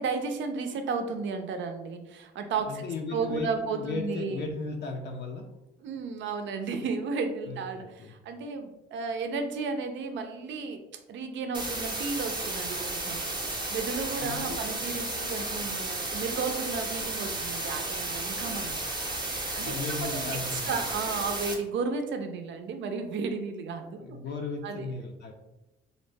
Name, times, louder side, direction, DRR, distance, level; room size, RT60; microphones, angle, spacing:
voice 1, 0.0-2.8 3.1-4.5 5.8-10.8 11.1-18.8 19.4-19.8 20.0-24.2 24.6-24.9, right 4 dB, 70° right, 6 dB, 0.5 m, -33 dB
voice 2, 2.7-5.5 7.5-8.1 14.2-14.6 19.6-20.8 24.0-25.3, left 3 dB, 60° left, 3 dB, 0.5 m, -36 dB
sound 1, 11.5-21.5, right 2 dB, 20° right, 0.6 m, -33 dB
2.6 x 2.0 x 3.2 m, 0.96 s
cardioid pair, 90°, 20 cm